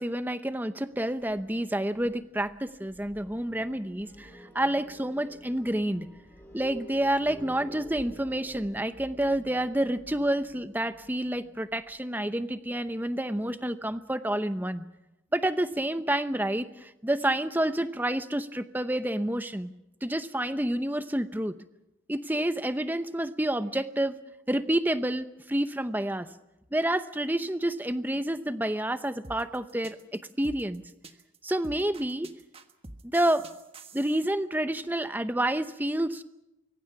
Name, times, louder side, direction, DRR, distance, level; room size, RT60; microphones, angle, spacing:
voice 1, 0.0-6.1 6.5-14.8 15.3-19.7 20.0-21.5 22.1-24.2 24.5-26.3 26.7-30.8 31.4-32.3 33.0-33.5 33.9-36.2, right 1 dB, 10° right, 11 dB, 0.8 m, -29 dB
sound 1, 0.9-11.8, equal, 10° left, 6.9 m, -50 dB
sound 2, 29.2-34.3, right 2 dB, 30° right, 1.4 m, -47 dB
24.5 x 23.0 x 5.9 m, 0.91 s
head